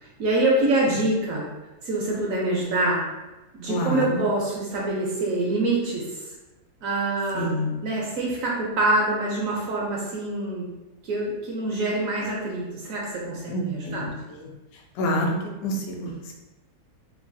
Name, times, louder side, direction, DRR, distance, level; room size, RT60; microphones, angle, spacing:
voice 1, 0.0-1.5 1.8-3.0 3.5-6.3 6.8-7.6 7.8-10.7 11.0-14.0, right 2 dB, 70° right, -3 dB, 0.8 m, -25 dB
voice 2, 3.7-4.2 7.3-7.8 13.5-14.5 14.9-15.3 15.6-16.3, left 1 dB, 70° left, 0 dB, 0.9 m, -28 dB
3.0 x 2.2 x 2.5 m, 1.1 s
omnidirectional pair, 1.8 m